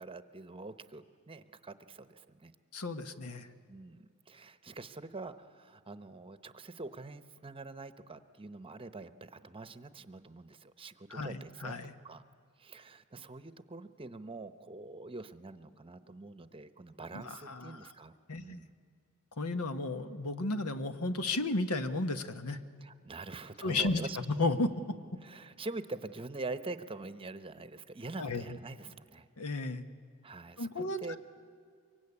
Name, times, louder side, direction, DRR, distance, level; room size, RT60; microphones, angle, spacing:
voice 1, 0.0-2.5 3.7-11.7 12.0-12.2 12.6-18.1 18.4-18.7 22.8-24.2 25.2-29.3 30.2-31.2, right 3 dB, 25° right, 12 dB, 0.9 m, -45 dB
voice 2, 2.7-3.5 11.1-11.9 17.1-17.8 18.3-18.6 19.4-22.6 23.6-24.0 24.4-25.0 28.2-28.4 29.4-29.8 30.6-31.2, left 2 dB, 80° left, 9 dB, 1.3 m, -33 dB
24.0 x 23.5 x 9.8 m, 2.2 s
head